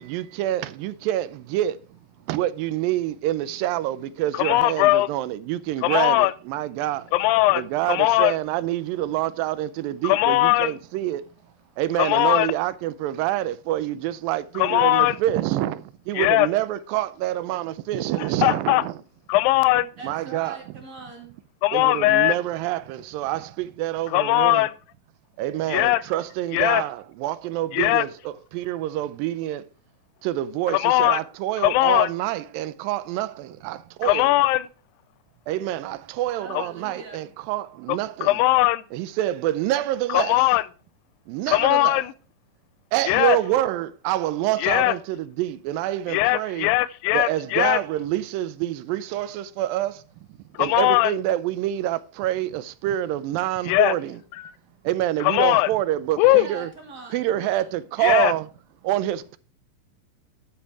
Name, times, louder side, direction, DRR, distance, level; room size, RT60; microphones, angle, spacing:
voice 1, 0.0-1.8 2.3-7.1 7.5-11.2 11.8-18.9 20.0-20.6 21.7-24.7 25.4-29.6 30.2-34.3 35.5-38.4 38.9-40.4 41.3-42.0 42.9-46.7 47.1-50.0 50.6-54.2 54.8-56.7 57.1-58.5 58.8-59.4, right 14 dB, 85° right, 2.4 m, -27 dB
voice 2, 4.4-5.1 5.8-6.3 7.1-7.6 7.9-8.3 10.0-10.7 12.0-12.5 14.6-15.2 16.1-16.5 18.4-18.8 19.3-19.9 21.6-22.4 24.1-24.7 25.7-26.0 26.5-26.8 27.7-28.0 30.7-31.2 31.6-32.1 34.0-34.7 36.5-36.7 37.9-38.8 40.1-40.6 41.5-42.1 43.1-43.4 44.6-44.9 46.1-47.8 50.6-51.1 53.7-53.9 54.4-54.5 55.2-55.7 56.2-56.5 58.0-58.3, left 17 dB, 90° left, 2.3 m, -19 dB
voice 3, 20.0-21.4 36.4-37.3 56.2-57.8, right 5 dB, 25° right, 2.7 m, -41 dB
11.5 x 5.4 x 4.6 m
omnidirectional pair, 4.0 m